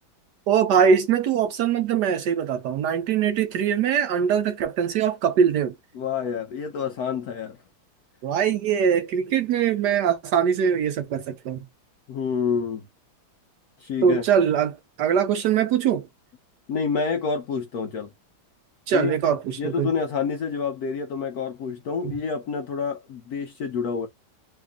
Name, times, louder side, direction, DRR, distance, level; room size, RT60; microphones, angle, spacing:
voice 1, 0.5-5.7 8.2-11.6 14.0-16.1 18.9-19.9 22.0-22.1, right 7 dB, 70° right, 1.0 m, -22 dB
voice 2, 5.9-7.6 12.1-12.9 13.8-14.2 16.7-18.1 18.9-19.2 19.6-24.1, left 5 dB, 75° left, 0.8 m, -28 dB
3.3 x 2.5 x 3.4 m
omnidirectional pair, 2.1 m